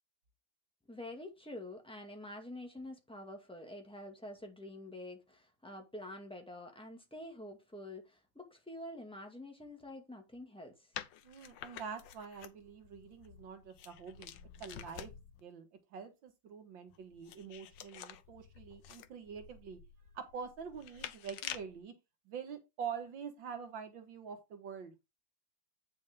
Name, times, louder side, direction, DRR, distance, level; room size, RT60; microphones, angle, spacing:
voice 1, 0.9-10.9, left 1 dB, 5° left, 1.9 m, -47 dB
sound 1, 10.9-15.4 16.9-21.8, left 10 dB, 80° left, 1.5 m, -49 dB
voice 2, 11.2-15.1 15.4-19.8 20.1-21.9 22.3-24.9, right 6 dB, 85° right, 2.2 m, -46 dB
9.0 x 6.3 x 3.7 m
omnidirectional pair, 2.0 m